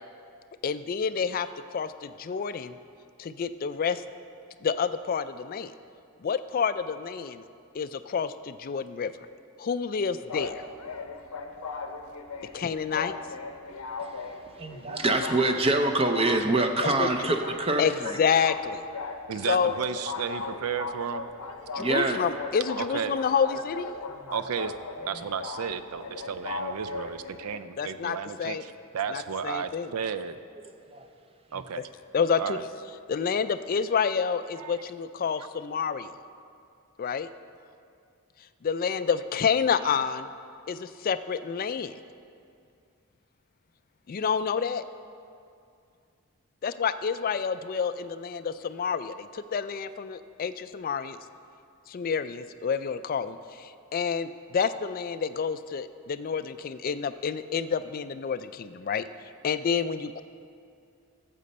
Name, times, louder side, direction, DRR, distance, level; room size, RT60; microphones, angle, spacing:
voice 1, 0.6-2.8 3.2-4.0 4.6-5.7 6.2-7.4 7.7-9.1 9.6-10.6 12.5-13.1 16.8-17.1 17.8-18.8 19.5-19.7 21.7-23.9 27.8-28.6 29.1-29.9 32.1-32.6 33.1-36.1 37.0-37.3 38.6-40.3 40.7-41.9 44.1-44.8 46.6-51.2 51.9-59.0 59.4-60.2, left 6 dB, 40° left, 0.3 m, -28 dB
sound 1, 10.3-27.6, left 4 dB, 75° left, 0.7 m, -38 dB
voice 2, 14.0-18.2 21.8-22.2 30.9-31.1, right 2 dB, 25° right, 0.5 m, -26 dB
voice 3, 19.3-21.3 22.8-23.2 24.3-24.7 25.1-30.4 31.5-31.9 32.4-32.6 34.6-34.8 35.3-35.5, right 6 dB, 80° right, 0.5 m, -33 dB
13.5 x 7.6 x 4.2 m
head